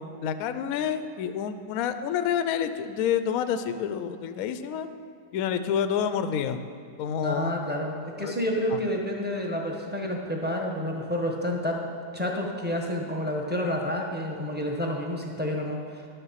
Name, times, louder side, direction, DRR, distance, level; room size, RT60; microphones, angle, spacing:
voice 1, 0.0-4.9 5.3-6.7 7.0-7.5 8.2-8.3 8.7-8.8, left 8 dB, 70° left, 10 dB, 0.9 m, -28 dB
voice 2, 7.2-11.8 12.1-16.1, left 1 dB, 5° right, 0 dB, 0.8 m, -29 dB
11.0 x 6.9 x 7.3 m, 2.2 s
omnidirectional pair, 1.9 m